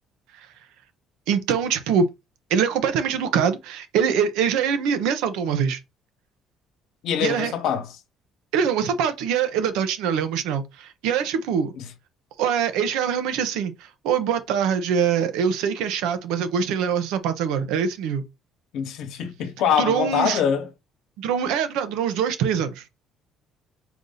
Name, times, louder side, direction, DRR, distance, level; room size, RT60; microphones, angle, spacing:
voice 1, 1.3-2.1 2.5-5.8 7.2-7.5 8.5-11.7 12.4-18.2 19.8-20.4 21.2-22.8, right 7 dB, 90° right, 0.8 m, -23 dB
voice 2, 7.0-7.9 11.8-11.9 18.7-20.7, left 8 dB, 70° left, 1.1 m, -24 dB
4.7 x 2.7 x 3.9 m
cardioid pair, 110°, 0 cm